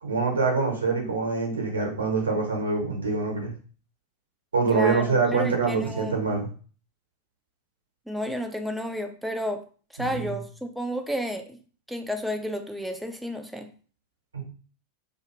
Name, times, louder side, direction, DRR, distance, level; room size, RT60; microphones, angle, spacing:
voice 1, 0.0-3.5 4.5-6.5 10.0-10.2 14.3-14.4, right 4 dB, 75° right, 1 dB, 0.8 m, -25 dB
voice 2, 4.7-6.1 8.1-9.6 10.0-11.6 11.9-13.7, equal, ahead, 5 dB, 0.4 m, -31 dB
2.5 x 2.4 x 2.9 m, 0.40 s
figure-of-eight pair, 90°, 0 cm